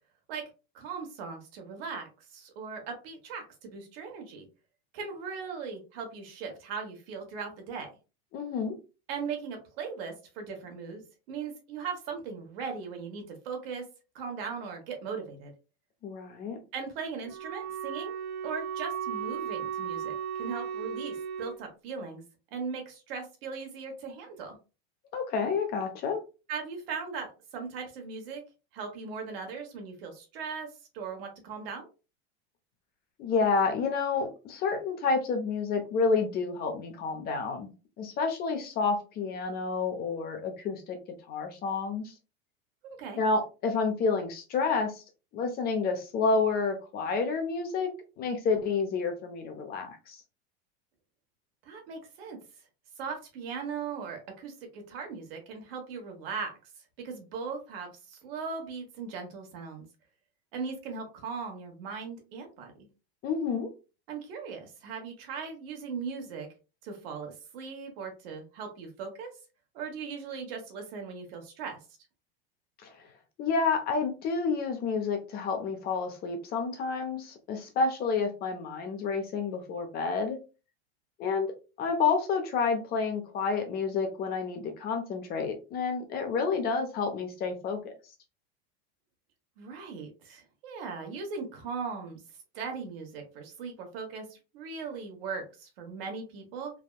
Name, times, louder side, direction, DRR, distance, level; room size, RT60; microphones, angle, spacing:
voice 1, 0.7-4.5 4.9-7.9 9.1-13.8 14.1-15.5 16.7-18.2 18.4-22.2 22.5-24.6 26.5-28.4 28.7-30.7 30.9-31.9 42.8-43.2 51.6-52.4 53.0-56.5 57.0-59.8 60.5-62.9 64.1-66.5 66.8-69.3 69.7-71.8 89.6-92.2 92.5-96.7, right 5 dB, 65° right, 3 dB, 1.1 m, -39 dB
voice 2, 8.3-8.8 16.0-16.6 25.1-26.2 33.2-37.7 38.0-41.0 41.3-42.1 43.1-45.0 45.3-47.9 48.2-50.2 63.2-63.7 72.8-72.9 73.4-80.4 81.2-87.9, left 4 dB, 30° left, 6 dB, 0.5 m, -29 dB
Wind instrument woodwind instrument, 17.2-21.6, right 8 dB, 90° right, 0.5 m, -35 dB
3.4 x 2.1 x 2.3 m, 0.31 s
supercardioid pair, 135°, 31 cm